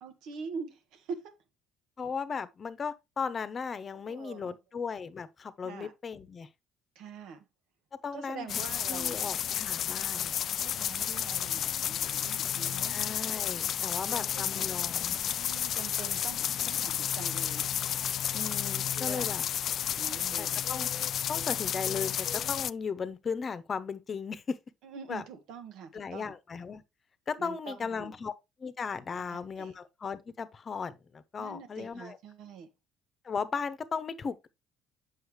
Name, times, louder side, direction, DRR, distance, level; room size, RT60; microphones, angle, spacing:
voice 1, 0.0-1.3 3.9-4.5 5.6-5.9 6.9-7.4 8.1-9.3 10.5-13.0 14.0-14.7 15.4-17.6 18.9-19.3 20.0-20.6 24.8-26.3 27.4-28.1 29.2-29.7 31.4-32.7, right 6 dB, 70° right, 1.3 m, -44 dB
voice 2, 2.0-6.5 8.0-8.6 8.9-10.3 12.9-15.2 18.3-19.4 20.4-20.9 21.3-24.6 25.1-25.2 25.9-26.8 27.3-28.3 28.6-32.2 33.2-34.5, left 5 dB, 40° left, 0.9 m, -36 dB
sound 1, 8.5-22.7, left 10 dB, 55° left, 0.3 m, -31 dB
8.0 x 5.6 x 3.1 m
hypercardioid pair, 65°, 0 cm